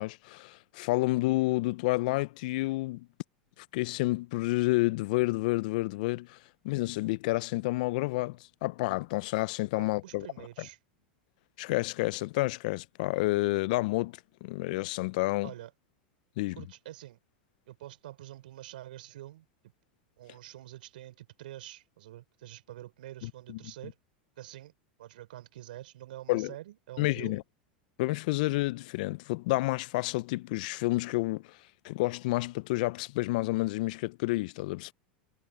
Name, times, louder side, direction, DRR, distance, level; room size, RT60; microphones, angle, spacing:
voice 1, 0.0-3.1 3.7-6.4 6.6-10.3 11.6-15.5 16.4-16.6 23.2-23.6 26.3-26.5 27.0-27.4 28.0-31.6 31.8-34.9, left 21 dB, 60° left, 0.8 m, -30 dB
voice 2, 9.8-10.8 15.4-15.7 16.6-17.2 17.7-19.5 20.2-24.0 24.4-24.7 25.0-27.4, right 14 dB, 70° right, 4.7 m, -46 dB
hypercardioid pair, 95°, 5 cm